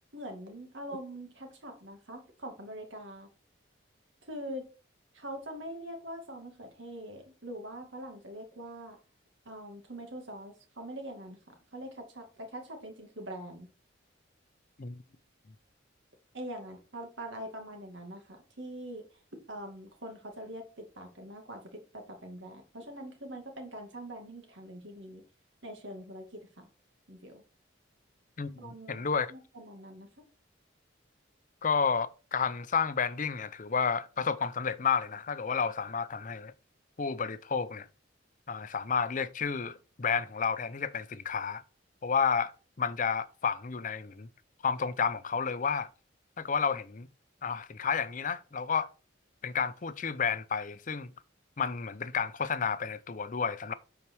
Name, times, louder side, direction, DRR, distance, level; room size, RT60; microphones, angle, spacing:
voice 1, 0.1-3.3 4.3-4.7 5.1-9.0 9.5-13.7 16.3-19.0 19.5-25.2 25.6-26.7 27.1-27.4 28.6-29.0 29.3-30.1, right 1 dB, 70° right, 2.3 m, -43 dB
voice 2, 28.4-29.3 31.6-36.5 37.0-37.9 38.5-41.6 42.0-42.5 42.8-44.3 44.6-45.9 46.4-47.1 47.4-48.9 49.4-51.1 51.6-53.7, left 6 dB, 45° left, 0.6 m, -31 dB
8.7 x 4.7 x 4.6 m
head